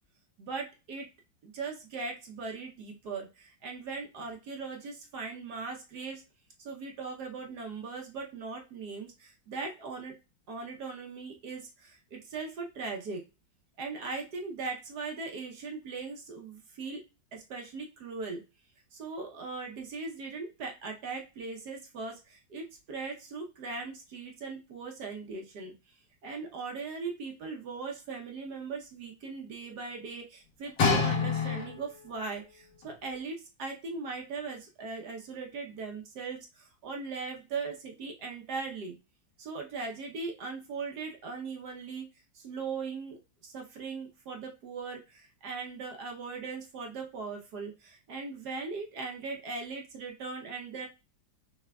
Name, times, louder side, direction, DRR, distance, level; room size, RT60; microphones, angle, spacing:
voice 1, 0.4-1.1 1.4-6.2 6.6-10.1 10.5-13.2 13.8-17.0 17.3-18.4 18.9-25.7 26.2-38.9 39.4-42.1 42.3-50.9, right 4 dB, 60° right, 2 dB, 1.3 m, -39 dB
sound 1, 30.8-32.1 32.8-32.9, left 4 dB, 70° left, 1.9 m, -27 dB
5.8 x 3.2 x 2.3 m, 0.29 s
omnidirectional pair, 2.1 m